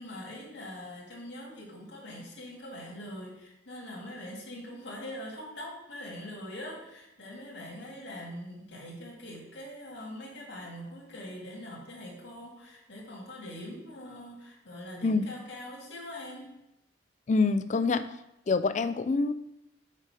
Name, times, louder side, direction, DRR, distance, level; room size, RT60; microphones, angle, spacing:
voice 1, 0.0-16.5, left 1 dB, 70° left, -2 dB, 2.1 m, -43 dB
voice 2, 17.3-18.1 18.5-19.3, left 3 dB, 40° left, 12 dB, 0.4 m, -26 dB
6.6 x 5.1 x 4.9 m, 0.87 s
head